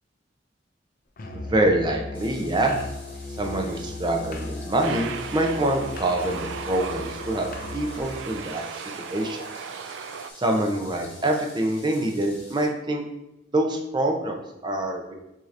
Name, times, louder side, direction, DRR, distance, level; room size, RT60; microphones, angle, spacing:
Musical instrument, 1.2-8.3, left 2 dB, 50° left, 0.5 m, -37 dB
voice 1, 1.4-2.8 3.4-9.4 10.4-13.0 13.5-15.1, right 1 dB, 25° right, 1 dB, 0.5 m, -25 dB
sound 1, 2.1-12.7, left 1 dB, 10° left, 1.4 m, -48 dB
Aircraft, 4.8-10.3, right 6 dB, 80° right, 0.3 m, -37 dB
6.3 x 2.8 x 2.5 m, 0.91 s
head